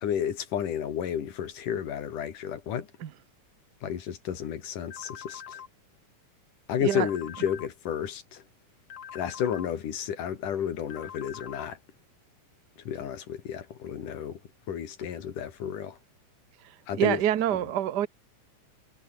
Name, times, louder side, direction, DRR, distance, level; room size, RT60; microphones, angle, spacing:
voice 1, 0.0-2.9 3.8-5.6 6.7-8.4 9.1-11.8 12.9-14.4 14.7-16.0 16.9-17.2 17.5-17.6, left 9 dB, 85° left, 3.8 m, -32 dB
sound 1, 4.9-5.7 6.9-7.7 8.9-9.7 10.9-11.7, left 8 dB, 55° left, 2.6 m, -43 dB
voice 2, 16.9-18.1, right 11 dB, 65° right, 1.0 m, -26 dB
omnidirectional pair, 3.6 m